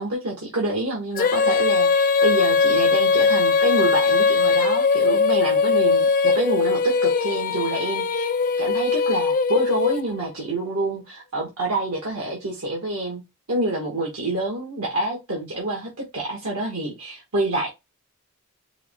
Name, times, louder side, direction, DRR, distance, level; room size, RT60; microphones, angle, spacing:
voice 1, 0.0-8.3 8.6-13.2 13.5-17.7, right 1 dB, 85° right, 1.4 m, -27 dB
Female singing, 1.2-10.3, left 5 dB, 40° left, 0.4 m, -20 dB
4.8 x 3.0 x 3.6 m
head